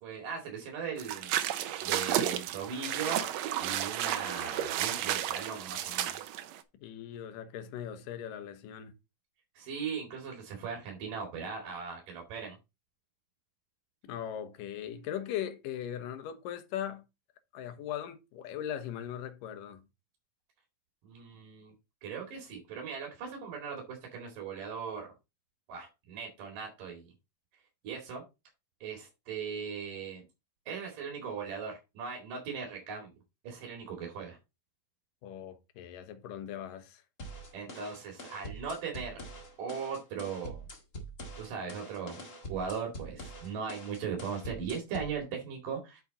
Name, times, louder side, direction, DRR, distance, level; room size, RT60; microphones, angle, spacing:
voice 1, 0.0-1.4 1.8-6.3 9.5-12.6 21.0-21.7 22.0-25.1 25.7-27.1 27.8-28.2 28.8-30.2 30.7-33.1 33.4-34.4 37.5-39.2 39.6-40.6 41.4-42.2 42.5-46.0, right 6 dB, 70° right, 3.8 m, -39 dB
sound 1, 1.0-6.6, right 11 dB, 90° right, 1.5 m, -32 dB
voice 2, 6.8-8.9 14.0-17.0 17.5-19.8 35.2-37.0, left 10 dB, 75° left, 2.7 m, -39 dB
sound 2, 37.2-45.2, right 1 dB, 30° left, 1.4 m, -45 dB
8.7 x 6.1 x 4.0 m
omnidirectional pair, 4.1 m